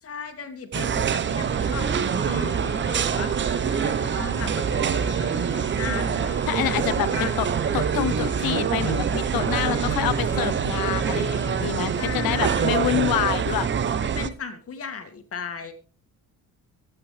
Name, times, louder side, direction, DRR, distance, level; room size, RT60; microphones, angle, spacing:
voice 1, 0.0-7.3 9.6-10.9 11.9-12.9 14.1-15.7, left 6 dB, 40° left, 7 dB, 2.2 m, -37 dB
sound 1, 0.7-14.3, right 7 dB, 30° right, 0.8 m, -25 dB
sound 2, 1.5-12.8, left 1 dB, 5° left, 1.4 m, -43 dB
sound 3, 3.6-10.8, right 8 dB, 60° right, 2.3 m, -40 dB
voice 2, 6.5-7.5 7.7-13.7, left 14 dB, 75° left, 18 dB, 0.8 m, -27 dB
24.5 x 8.9 x 3.4 m, 0.37 s
cardioid pair, 160°, 35 cm